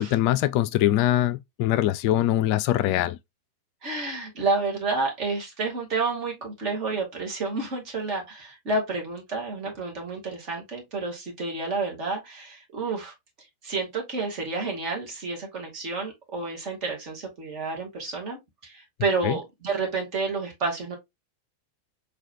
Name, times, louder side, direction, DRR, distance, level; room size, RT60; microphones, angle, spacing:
voice 1, 0.0-3.2 19.2-19.4, left 13 dB, 45° left, 0.3 m, -23 dB
voice 2, 3.8-13.1 13.6-21.0, right 3 dB, 40° right, 2.1 m, -30 dB
4.8 x 3.3 x 2.9 m
figure-of-eight pair, 90°, 0 cm